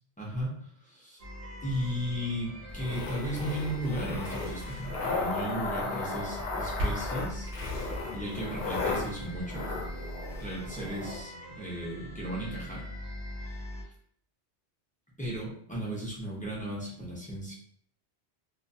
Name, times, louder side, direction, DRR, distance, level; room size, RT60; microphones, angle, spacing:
voice 1, 0.2-1.2 1.6-7.5 8.1-9.7 10.4-12.8 13.4-13.6 15.2-17.5, equal, 10° left, -5 dB, 0.5 m, -35 dB
sound 1, 1.2-13.8, equal, 55° right, 0.4 m, -43 dB
sound 2, 2.7-11.2, left 3 dB, 60° left, 0.7 m, -35 dB
sound 3, 6.3-7.4, right 1 dB, 75° right, 0.9 m, -35 dB
2.3 x 2.2 x 2.6 m, 0.62 s
omnidirectional pair, 1.1 m